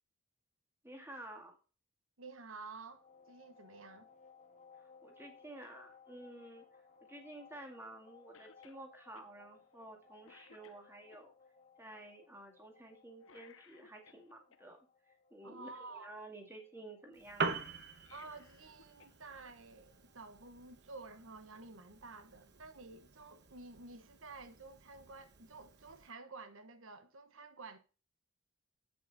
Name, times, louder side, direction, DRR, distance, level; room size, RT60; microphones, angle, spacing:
voice 1, 0.8-1.6 5.0-6.6 7.1-11.3 11.8-14.8 15.1-17.7, right 1 dB, 10° right, 1.9 m, -52 dB
voice 2, 2.2-4.1 15.4-16.1 18.1-27.8, right 3 dB, 70° right, 1.2 m, -51 dB
sound 1, 2.9-21.5, left 5 dB, 35° left, 2.0 m, -64 dB
Cough, 8.3-8.8 9.2-9.3 9.8-10.0 10.2-11.2 13.2-14.6 17.9-19.2 19.5-19.6 20.7-20.8, left 6 dB, 65° left, 0.8 m, -62 dB
Piano, 17.1-26.1, right 4 dB, 50° right, 1.0 m, -45 dB
8.1 x 7.7 x 4.1 m
head